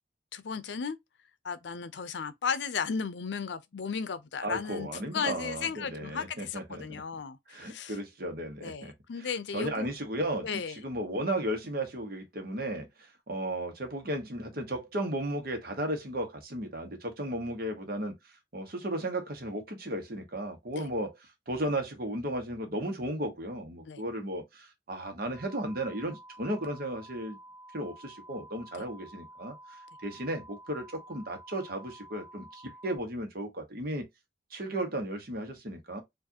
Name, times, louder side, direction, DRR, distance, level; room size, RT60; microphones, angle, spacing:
voice 1, 0.3-1.0 1.4-4.9 5.1-8.0 8.6-9.9 10.4-10.8 20.8-20.9 23.9-24.0, left 6 dB, 80° left, 0.5 m, -35 dB
voice 2, 4.4-7.0 7.5-8.9 9.2-12.9 13.3-18.1 18.5-21.2 21.5-27.4 27.7-34.0 34.5-36.0, right 1 dB, 55° right, 1.1 m, -35 dB
sound 1, 25.3-33.0, right 1 dB, 10° left, 2.0 m, -51 dB
4.7 x 2.5 x 2.7 m
head